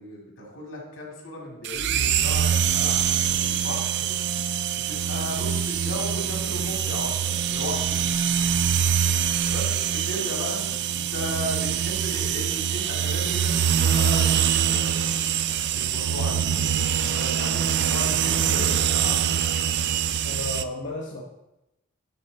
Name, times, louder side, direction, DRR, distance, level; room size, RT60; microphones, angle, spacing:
voice 1, 0.0-4.1 4.7-8.0 9.5-10.6 10.9-15.1 15.7-19.2, left 1 dB, 85° left, -1 dB, 2.5 m, -36 dB
sound 1, 1.6-20.6, right 8 dB, 60° right, 0.4 m, -24 dB
voice 2, 18.5-19.0 20.2-21.2, left 2 dB, 60° left, -1 dB, 1.1 m, -34 dB
11.5 x 4.3 x 4.1 m, 0.90 s
head